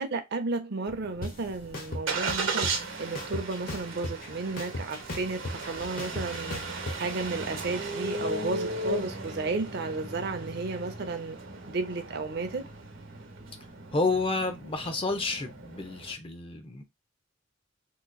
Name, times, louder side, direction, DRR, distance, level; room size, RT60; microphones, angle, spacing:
voice 1, 0.0-6.6 7.0-11.4 11.7-12.6, right 3 dB, 60° right, 0.6 m, -33 dB
Engine starting, 0.9-16.1, right 2 dB, 85° right, 0.9 m, -36 dB
sound 1, 1.2-1.3 1.7-2.7 3.2-4.3 4.6-7.0, left 1 dB, 50° left, 1.1 m, -35 dB
voice 2, 13.9-16.8, left 3 dB, 30° left, 0.6 m, -30 dB
3.8 x 2.9 x 2.3 m
head